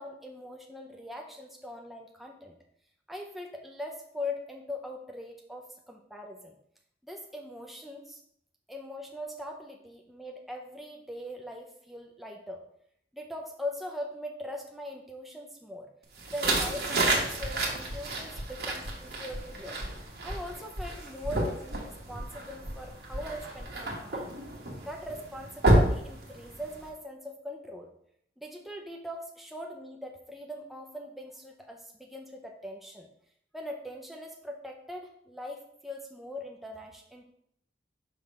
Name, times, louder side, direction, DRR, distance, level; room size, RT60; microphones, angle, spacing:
voice 1, 0.0-2.6 3.1-6.5 7.0-8.2 8.7-12.6 13.1-15.9 16.3-19.8 20.2-24.3 24.8-27.9 28.4-33.1 33.5-37.2, left 1 dB, ahead, 1 dB, 0.5 m, -41 dB
sound 1, 16.2-26.9, right 1 dB, 55° right, 1.3 m, -30 dB
sound 2, 17.4-23.6, equal, 80° right, 1.1 m, -40 dB
5.8 x 3.3 x 5.2 m, 0.71 s
head